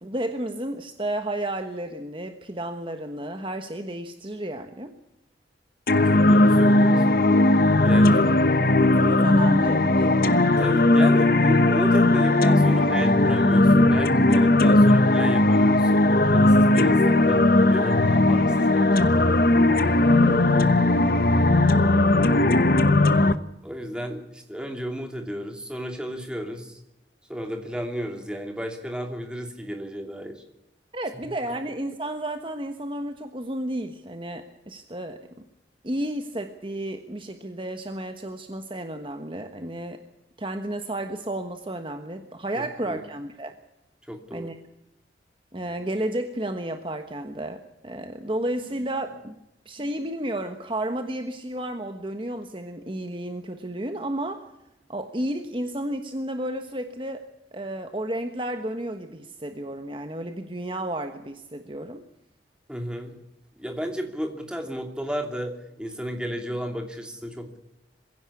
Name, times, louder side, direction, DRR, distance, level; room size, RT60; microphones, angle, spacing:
voice 1, 0.0-4.9 8.1-8.4 8.7-10.2 16.5-16.8 19.6-20.5 21.8-22.7 30.9-35.3 35.8-40.0 40.4-43.5 44.3-44.6 45.5-49.3 49.6-54.5 54.9-57.2 57.5-62.0, right 1 dB, 30° right, 6 dB, 1.2 m, -32 dB
sound 1, 5.9-23.3, left 2 dB, 50° left, 1.1 m, -18 dB
voice 2, 6.1-7.2 7.8-8.3 10.6-19.1 23.6-26.8 27.3-30.4 42.8-43.0 44.1-44.5 62.7-63.2 63.6-67.6, equal, 5° right, 3 dB, 2.7 m, -33 dB
22.5 x 16.0 x 8.4 m, 0.91 s
head